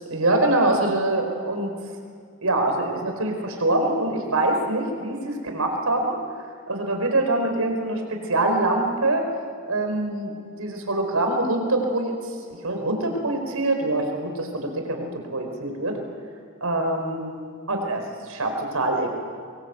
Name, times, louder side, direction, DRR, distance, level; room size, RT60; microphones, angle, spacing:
voice 1, 0.1-1.7 2.4-6.2 6.7-9.3 9.6-10.3 10.6-12.1 12.5-16.0 16.6-17.3 17.7-19.1, right 2 dB, 85° right, 4 dB, 4.7 m, -24 dB
24.0 x 23.5 x 8.1 m, 2.1 s
head